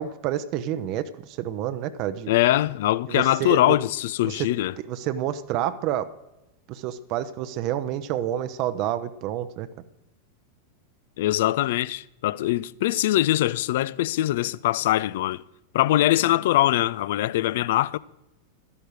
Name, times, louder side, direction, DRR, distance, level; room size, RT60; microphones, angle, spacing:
voice 1, 0.0-2.3 3.1-3.8 4.3-4.4 4.9-6.1 6.7-9.7, right 11 dB, 40° right, 0.7 m, -29 dB
voice 2, 2.3-4.8 11.2-15.4 15.7-18.0, left 15 dB, 55° left, 0.4 m, -22 dB
13.0 x 11.0 x 6.5 m
figure-of-eight pair, 90°, 0 cm